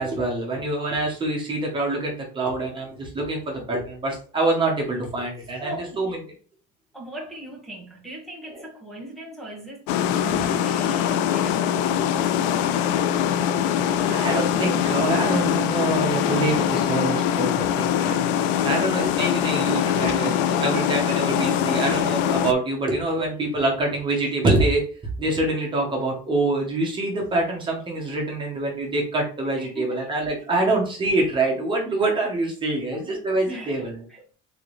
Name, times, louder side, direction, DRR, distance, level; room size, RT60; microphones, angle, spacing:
voice 1, 0.0-6.2 13.9-24.8 25.2-34.0, right 2 dB, 25° right, 1.7 m, -25 dB
voice 2, 5.6-6.2 6.9-13.0 29.6-30.2 32.7-33.0 33.5-34.2, right 1 dB, ahead, 1.7 m, -40 dB
sound 1, 9.9-22.5, left 9 dB, 70° left, 0.5 m, -23 dB
4.1 x 3.6 x 3.3 m
cardioid pair, 135°, 20 cm